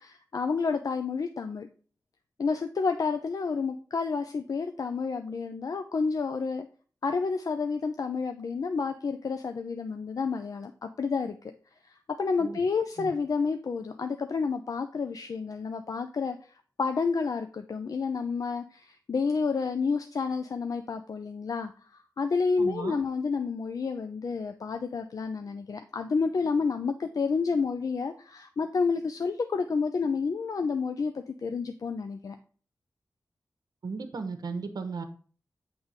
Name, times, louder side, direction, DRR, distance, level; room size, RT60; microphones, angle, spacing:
voice 1, 0.0-1.7 2.4-6.7 7.0-11.5 11.8-32.4, left 4 dB, 60° left, 7 dB, 0.5 m, -30 dB
voice 2, 22.6-23.0 33.8-35.0, right 4 dB, 75° right, 7 dB, 0.9 m, -35 dB
8.0 x 3.4 x 5.0 m, 0.41 s
wide cardioid pair, 90°, 7 cm